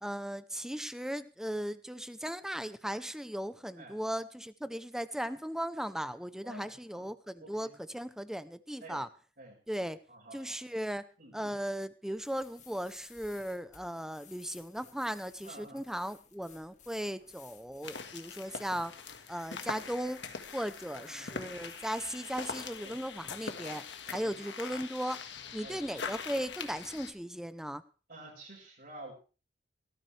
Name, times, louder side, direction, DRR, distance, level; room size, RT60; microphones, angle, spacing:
voice 1, 0.0-9.1 9.7-10.0 10.3-11.1 11.3-18.9 19.3-20.2 20.5-23.8 24.1-25.2 25.5-27.8, equal, 5° right, 13 dB, 0.7 m, -37 dB
voice 2, 6.4-7.1 7.4-7.8 8.8-9.0 9.4-9.6 10.1-10.6 11.2-11.6 15.4-15.8 20.9-21.6 22.8-23.0 24.1-24.8 25.6-25.8 28.1-29.1, right 2 dB, 55° right, -4 dB, 5.4 m, -50 dB
sound 1, 12.1-23.4, left 7 dB, 40° left, 1.9 m, -59 dB
sound 2, 17.8-27.1, left 5 dB, 85° left, 1.6 m, -42 dB
17.5 x 14.0 x 3.3 m, 0.35 s
head